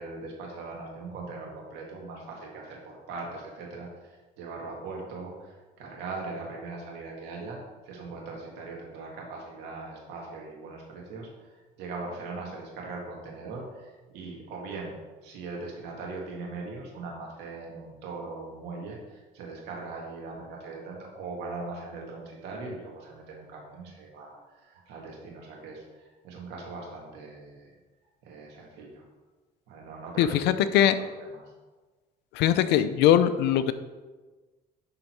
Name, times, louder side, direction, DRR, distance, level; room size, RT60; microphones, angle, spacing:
voice 1, 0.0-7.6 7.9-14.9 15.2-27.7 28.2-29.0 29.7-30.5 31.3-31.4, right 3 dB, 90° right, -1 dB, 2.1 m, -40 dB
voice 2, 30.2-31.0 32.3-33.7, left 10 dB, 90° left, 12 dB, 0.5 m, -21 dB
11.0 x 3.9 x 4.7 m, 1.3 s
cardioid pair, 110°, 17 cm